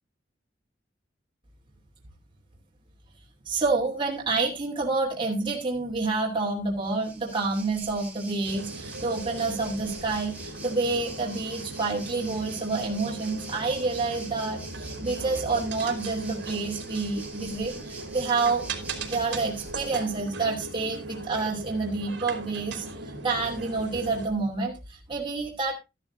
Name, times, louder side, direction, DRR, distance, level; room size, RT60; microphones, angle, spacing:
voice 1, 3.5-18.7 19.1-25.8, right 3 dB, 25° right, -2 dB, 2.7 m, -28 dB
Waves surf, 6.8-20.2, right 3 dB, 10° right, 3.6 m, -45 dB
sound 1, 8.5-24.3, right 2 dB, 65° right, 3.3 m, -39 dB
13.5 x 12.5 x 2.6 m, 0.25 s
head